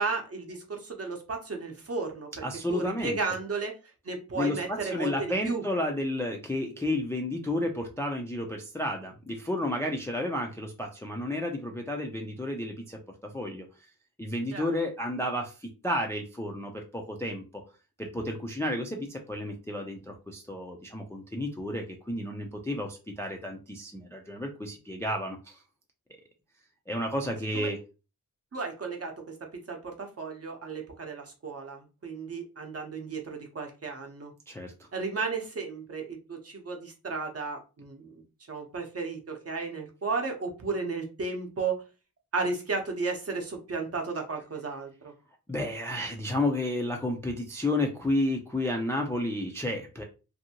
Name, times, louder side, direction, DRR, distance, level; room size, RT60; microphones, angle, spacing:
voice 1, 0.0-2.4 2.7-3.7 4.0-5.6 14.5-14.7 27.5-27.7 28.5-29.4 29.7-34.3 34.9-38.2 38.5-41.8 42.3-45.1, right 4 dB, 40° right, 3 dB, 0.8 m, -34 dB
voice 2, 2.4-3.2 4.3-13.0 13.3-13.7 14.2-17.6 18.0-25.6 26.9-27.8 34.5-34.9 45.5-50.0, left 1 dB, 5° left, 2 dB, 0.4 m, -31 dB
2.6 x 2.6 x 2.8 m, 0.31 s
wide cardioid pair, 125°, 38 cm